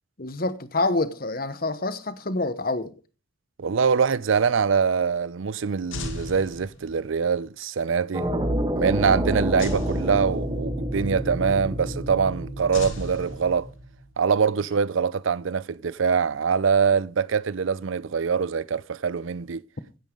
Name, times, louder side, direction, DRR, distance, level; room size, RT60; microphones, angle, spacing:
voice 1, 0.2-2.9, left 2 dB, 45° left, 1.0 m, -27 dB
voice 2, 3.6-8.3 8.8-13.7 14.2-19.6, right 6 dB, 80° right, 0.5 m, -24 dB
sound 1, 5.9-7.2 9.6-10.9 12.7-14.0, left 2 dB, 85° left, 2.1 m, -36 dB
sound 2, 8.1-14.0, equal, 20° right, 1.4 m, -28 dB
16.0 x 10.5 x 3.8 m
head